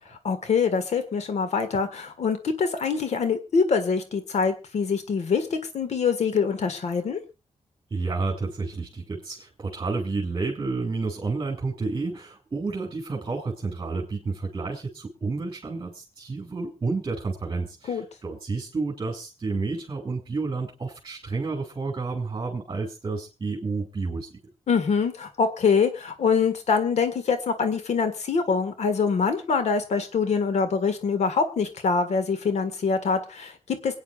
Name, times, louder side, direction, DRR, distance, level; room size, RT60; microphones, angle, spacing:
voice 1, 0.2-7.2 17.9-18.0 24.7-34.0, left 5 dB, 85° left, 9 dB, 1.7 m, -24 dB
voice 2, 7.9-24.3, right 3 dB, 35° right, -1 dB, 3.1 m, -30 dB
27.0 x 9.3 x 2.4 m, 0.28 s
wide cardioid pair, 135°, 11 cm